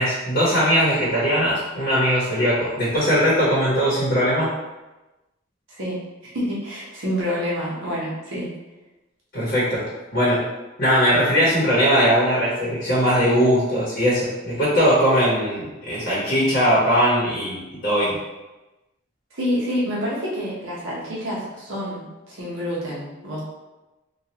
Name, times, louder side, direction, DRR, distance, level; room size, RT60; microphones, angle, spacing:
voice 1, 0.0-4.5 9.3-9.9 10.1-10.4 10.8-18.2, equal, 45° left, -9 dB, 0.9 m, -20 dB
voice 2, 5.7-8.5 19.3-23.4, equal, 70° right, -7 dB, 0.8 m, -28 dB
3.1 x 2.3 x 2.9 m, 1.1 s
head